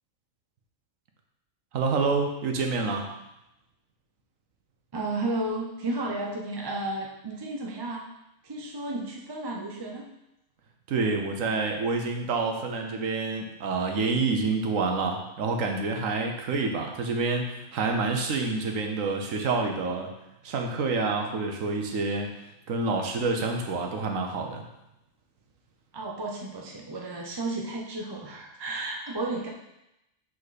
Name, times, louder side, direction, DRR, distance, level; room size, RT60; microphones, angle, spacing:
voice 1, 1.7-3.1 10.9-20.1 20.4-22.3 22.7-24.6, right 3 dB, 80° right, 3 dB, 1.3 m, -28 dB
voice 2, 4.9-8.0 8.4-10.0 25.9-29.5, right 2 dB, 25° right, -1 dB, 0.6 m, -33 dB
6.0 x 5.2 x 4.1 m, 0.88 s
omnidirectional pair, 1.4 m